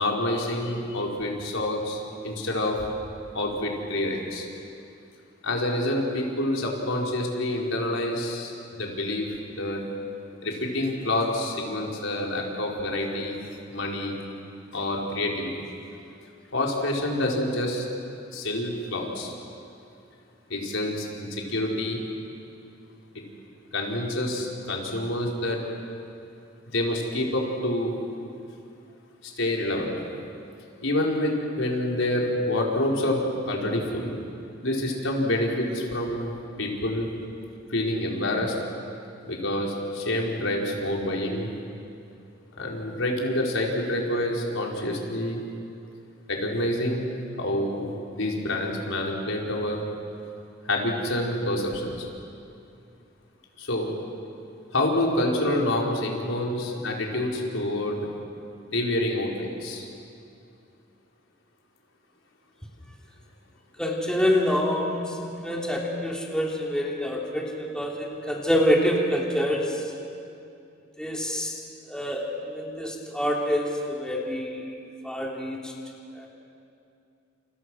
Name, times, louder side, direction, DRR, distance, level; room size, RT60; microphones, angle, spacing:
voice 1, 0.0-2.9 3.3-4.5 5.4-9.8 10.4-13.4 13.7-14.2 14.7-15.6 16.5-17.9 18.3-19.3 20.5-22.0 23.1-23.2 23.7-25.6 26.7-27.9 29.2-29.9 30.8-34.2 34.6-37.1 37.7-38.5 39.2-41.5 42.6-45.4 46.3-47.1 47.4-49.8 50.6-52.1 53.6-53.9 54.7-58.1 58.7-59.9, left 1 dB, 85° left, -1 dB, 4.6 m, -27 dB
voice 2, 63.8-69.8 71.0-71.6 71.9-74.7 75.0-75.7 76.1-76.3, equal, 5° left, -2 dB, 3.3 m, -26 dB
30.0 x 29.0 x 6.3 m, 2.6 s
head